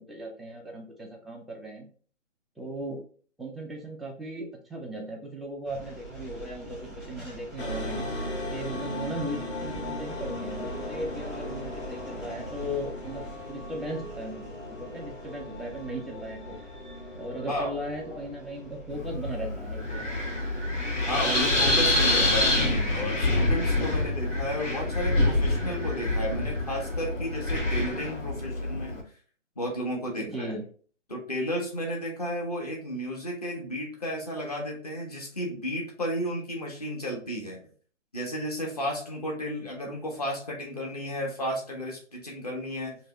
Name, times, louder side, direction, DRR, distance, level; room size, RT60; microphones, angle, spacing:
voice 1, 0.0-1.9 2.6-3.0 3.4-8.1 8.5-16.6 17.2-20.0 30.2-30.6, equal, ahead, 1 dB, 0.3 m, -37 dB
sound 1, 5.6-25.1, right 1 dB, 15° left, 1.2 m, -45 dB
sound 2, 7.6-18.8, left 1 dB, 60° left, 1.1 m, -38 dB
voice 2, 17.5-17.8 18.1-18.2 21.0-28.9 29.6-30.6 31.1-37.6 38.1-43.0, equal, 30° left, 0 dB, 0.9 m, -33 dB
Wind, 18.9-29.0, left 2 dB, 85° left, 1.9 m, -26 dB
3.2 x 2.9 x 3.5 m, 0.43 s
hypercardioid pair, 175°, 37 cm